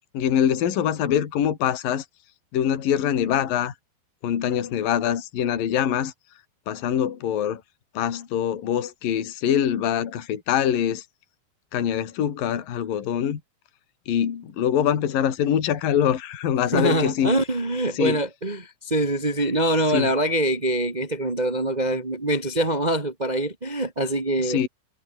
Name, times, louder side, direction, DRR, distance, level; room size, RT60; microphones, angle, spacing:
voice 1, 0.1-2.1 2.5-3.7 4.2-6.1 6.7-7.6 7.9-11.0 11.7-13.4 14.1-17.3 17.9-18.2 19.9-20.1 24.4-24.7, left 9 dB, 50° left, 4.0 m, -24 dB
voice 2, 16.7-24.6, right 1 dB, 25° right, 1.0 m, -24 dB
omnidirectional pair, 5.6 m